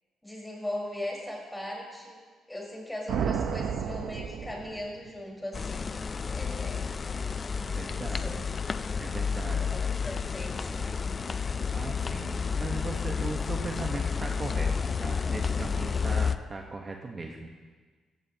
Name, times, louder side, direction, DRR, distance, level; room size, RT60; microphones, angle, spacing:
voice 1, 0.2-2.2 2.5-6.0 6.3-7.0 8.0-8.4 9.7-11.2, left 1 dB, 10° left, -3 dB, 4.5 m, -39 dB
sound 1, 3.1-5.2, right 7 dB, 75° right, 0.8 m, -32 dB
sound 2, 5.5-16.4, left 5 dB, 35° left, 0.4 m, -31 dB
voice 2, 7.7-8.5 9.0-9.8 11.7-14.7 15.0-17.5, right 3 dB, 35° right, 2 dB, 1.1 m, -38 dB
16.0 x 14.5 x 2.9 m, 1.5 s
cardioid pair, 90°, 0 cm